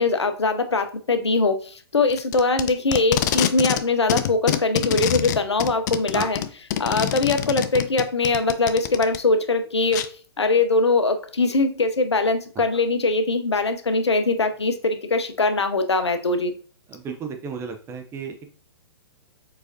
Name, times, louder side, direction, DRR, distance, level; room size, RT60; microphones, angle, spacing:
voice 1, 0.0-6.4 6.8-10.1 10.4-16.5, left 3 dB, 80° left, 8 dB, 0.7 m, -22 dB
Packing tape duct tape, 2.1-3.8 4.1-9.2 9.9-10.1, left 11 dB, 40° left, 0.4 m, -25 dB
voice 2, 16.9-18.4, right 6 dB, 20° right, 5 dB, 0.5 m, -33 dB
4.7 x 4.1 x 2.7 m, 0.40 s
figure-of-eight pair, 115°, 14 cm